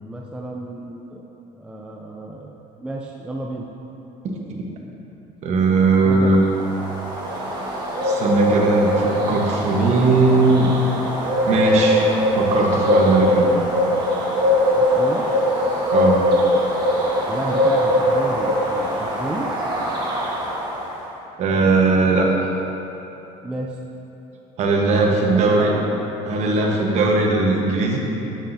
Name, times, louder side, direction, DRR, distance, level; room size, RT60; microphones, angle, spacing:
voice 1, 0.0-1.2 1.5-3.7 6.0-6.4 13.3-13.6 14.7-15.3 17.3-19.5 23.4-23.8 25.1-25.6, right 1 dB, 5° right, -1 dB, 0.3 m, -32 dB
voice 2, 5.4-6.4 8.0-10.7 11.5-12.1 12.3-13.6 15.9-16.2 21.4-22.3 24.6-25.8 26.3-28.0, right 3 dB, 45° right, 0 dB, 1.0 m, -18 dB
sound 1, 6.3-20.9, equal, 25° right, 1.4 m, -21 dB
12.0 x 5.8 x 2.6 m, 3.0 s
cardioid pair, 155°, 16 cm